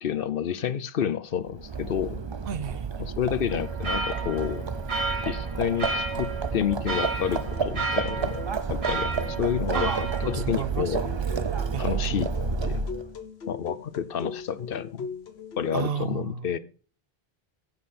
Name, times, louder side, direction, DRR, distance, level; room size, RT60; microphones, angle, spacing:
voice 1, 0.0-2.2 3.0-4.6 5.2-8.4 8.7-9.9 10.2-11.0 11.8-12.3 12.6-12.8 13.5-15.1 15.6-16.6, left 8 dB, 65° left, 0.8 m, -29 dB
Livestock farm animals working animals, 1.5-13.1, right 5 dB, 35° right, 0.5 m, -30 dB
voice 2, 2.5-3.1 9.7-11.1 11.7-12.0 15.7-16.5, right 8 dB, 65° right, 1.0 m, -33 dB
sound 1, 3.5-10.7, right 3 dB, 90° right, 2.5 m, -33 dB
sound 2, 7.4-15.9, left 5 dB, 85° left, 1.3 m, -41 dB
15.0 x 5.7 x 4.2 m
omnidirectional pair, 1.0 m